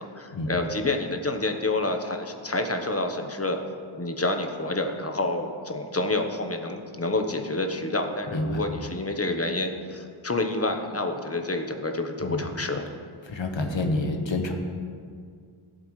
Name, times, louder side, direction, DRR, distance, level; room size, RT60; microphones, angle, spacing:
voice 1, 0.0-3.6 4.0-12.8, left 2 dB, 30° left, 5 dB, 1.1 m, -28 dB
voice 2, 8.3-8.7 12.2-12.5 13.2-14.5, left 2 dB, 65° left, 3 dB, 1.4 m, -28 dB
17.5 x 7.7 x 3.3 m, 2.2 s
wide cardioid pair, 60°, 50 cm